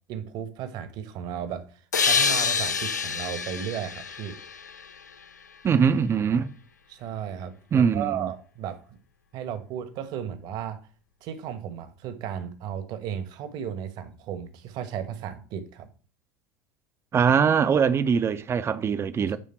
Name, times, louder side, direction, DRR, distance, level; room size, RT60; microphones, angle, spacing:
voice 1, 0.1-1.7 2.0-4.4 6.9-8.8 9.3-10.8 11.2-15.9, right 9 dB, 50° right, 1.3 m, -34 dB
sound 1, 1.9-5.4, left 5 dB, 85° left, 0.6 m, -27 dB
voice 2, 5.6-6.5 7.7-8.2 17.1-19.4, right 6 dB, 30° right, 0.7 m, -22 dB
10.0 x 3.6 x 4.4 m
figure-of-eight pair, 75°, 9 cm